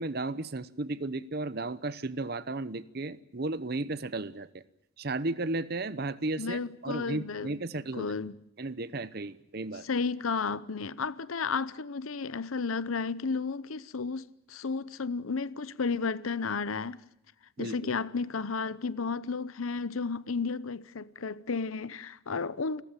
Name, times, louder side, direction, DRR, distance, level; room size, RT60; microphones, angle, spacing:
voice 1, 0.0-4.6 5.0-8.1 8.6-9.9 17.6-17.7, right 2 dB, 50° right, 0.9 m, -34 dB
voice 2, 6.4-7.5 7.9-8.4 9.8-17.0 17.6-22.8, left 4 dB, 90° left, 0.8 m, -33 dB
29.5 x 14.5 x 8.9 m
head